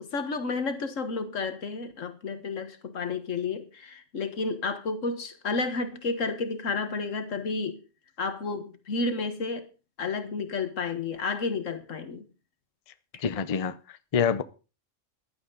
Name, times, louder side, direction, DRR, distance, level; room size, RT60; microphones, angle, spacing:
voice 1, 0.0-7.8 8.2-9.7 10.0-12.3 13.1-13.2, left 4 dB, 80° left, 1.8 m, -31 dB
voice 2, 13.2-14.4, left 6 dB, 35° left, 0.6 m, -27 dB
15.0 x 11.5 x 3.9 m
omnidirectional pair, 1.3 m